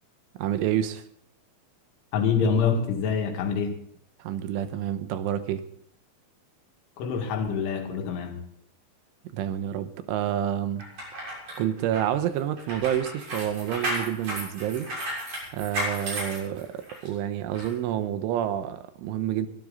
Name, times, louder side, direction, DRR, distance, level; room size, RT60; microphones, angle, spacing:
voice 1, 0.4-1.0 4.2-5.7 9.3-10.9 11.6-14.9 15.5-19.5, right 11 dB, 90° right, 3.5 m, -28 dB
voice 2, 2.1-3.8 7.0-8.4, left 6 dB, 80° left, 4.4 m, -26 dB
sound 1, 10.8-17.1 17.5-17.7, equal, 35° right, 7.9 m, -34 dB
23.5 x 12.5 x 3.9 m
omnidirectional pair, 5.5 m